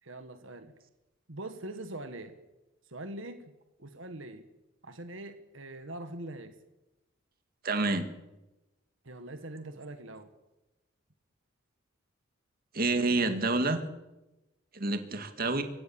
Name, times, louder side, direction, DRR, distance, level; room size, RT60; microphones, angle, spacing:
voice 1, 0.0-0.7 1.3-2.3 2.9-3.5 3.8-4.5 4.8-6.5 9.0-10.3, right 1 dB, 65° right, 8 dB, 1.8 m, -42 dB
voice 2, 7.6-8.1 12.7-13.8 14.7-15.6, right 3 dB, 45° right, 7 dB, 2.0 m, -28 dB
28.5 x 17.0 x 7.3 m, 1.0 s
head